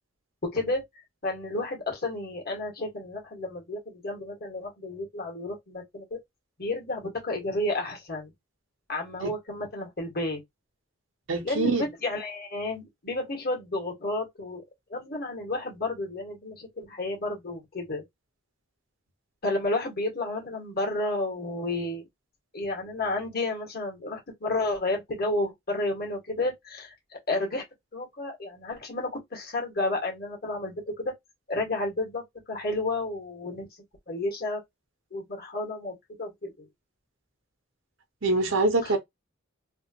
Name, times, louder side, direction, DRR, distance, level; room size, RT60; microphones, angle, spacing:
voice 1, 1.2-6.2 6.6-8.3 8.9-10.4 11.4-14.6 14.9-18.0 19.4-22.1 22.5-27.6 27.9-31.1 31.5-33.7 34.1-34.6 35.1-36.7 38.8-38.9, left 2 dB, 50° left, 1.8 m, -31 dB
voice 2, 11.3-11.9 38.2-39.0, right 2 dB, 65° right, 1.0 m, -24 dB
3.4 x 2.5 x 2.9 m
head